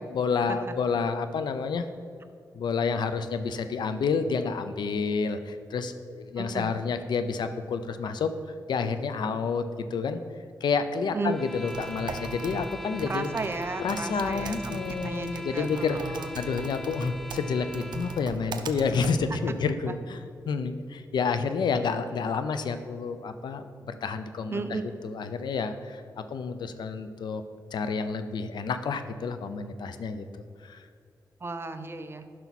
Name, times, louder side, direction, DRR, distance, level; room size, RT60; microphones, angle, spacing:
voice 1, 0.1-1.8 2.5-8.3 8.7-9.6 9.9-10.2 10.6-13.3 13.8-16.0 16.3-20.2 20.5-24.6 25.0-26.0 26.3-27.4 27.7-30.3 30.6-30.8, left 5 dB, 90° left, 10 dB, 0.6 m, -29 dB
voice 2, 6.4-6.7 11.1-11.4 13.0-16.3 19.5-19.6 19.9-20.0 24.5-24.8 31.4-32.2, right 3 dB, 35° right, 8 dB, 0.7 m, -34 dB
sound 1, 11.2-18.3, left 1 dB, 5° left, 0.4 m, -41 dB
Typing, 11.5-19.7, right 4 dB, 85° right, 0.6 m, -40 dB
11.0 x 5.9 x 4.1 m, 2.4 s
cardioid pair, 80°, 7 cm